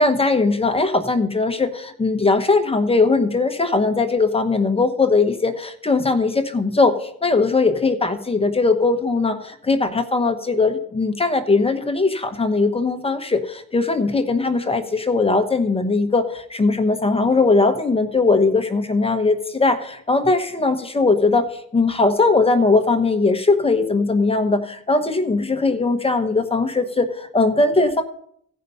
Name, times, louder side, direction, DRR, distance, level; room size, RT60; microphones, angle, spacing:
voice 1, 0.0-28.0, left 3 dB, 20° left, 6 dB, 1.0 m, -19 dB
15.0 x 5.5 x 5.5 m, 0.67 s
cardioid pair, 95°, 30 cm